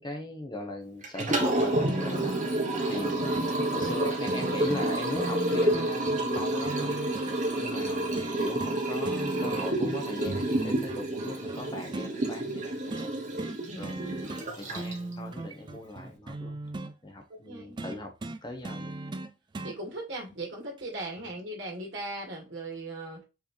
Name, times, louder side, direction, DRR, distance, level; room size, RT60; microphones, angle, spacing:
voice 1, 0.0-2.4 2.8-6.9 7.6-13.1 13.8-14.2 14.6-16.6 17.0-18.1 18.4-18.9, left 1 dB, 25° left, 0.9 m, -38 dB
Liquid, 1.0-15.1, right 1 dB, 40° right, 1.2 m, -29 dB
sound 1, 1.9-2.5 3.4-3.5 3.8-4.0 4.3-7.4 8.2-8.8 9.0-9.9 10.2-12.1 12.9-13.1 13.4-13.6 13.8-14.5 14.7-16.9 17.8-19.8 20.8-20.9, right 2 dB, 25° right, 0.3 m, -37 dB
voice 2, 13.6-13.9 17.3-17.8 19.6-23.2, right 2 dB, 70° right, 1.9 m, -38 dB
4.8 x 3.2 x 2.6 m
head